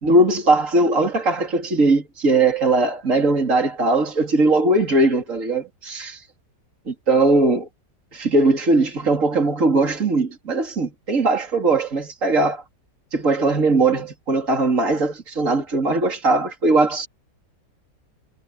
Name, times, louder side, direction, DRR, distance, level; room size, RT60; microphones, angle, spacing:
voice 1, 0.0-6.2 6.9-7.7 8.1-12.6 13.1-17.1, right 2 dB, 45° right, 3.9 m, -19 dB
omnidirectional pair, 1.8 m